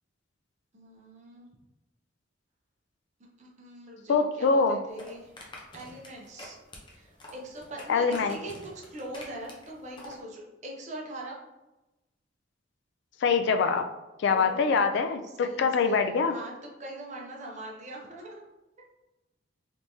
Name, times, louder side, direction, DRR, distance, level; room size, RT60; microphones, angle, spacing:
voice 1, 0.7-1.5 3.4-5.3 5.7-6.6 6.9-11.4 14.3-14.9 15.2-16.5 16.8-18.4, right 1 dB, 40° right, -2 dB, 0.7 m, -42 dB
voice 2, 4.1-4.8 7.9-8.4 13.2-13.9 14.2-16.3, left 5 dB, 65° left, 8 dB, 0.3 m, -24 dB
sound 1, 4.9-10.2, left 1 dB, 25° left, 0.6 m, -47 dB
3.4 x 3.0 x 2.7 m, 1.0 s
head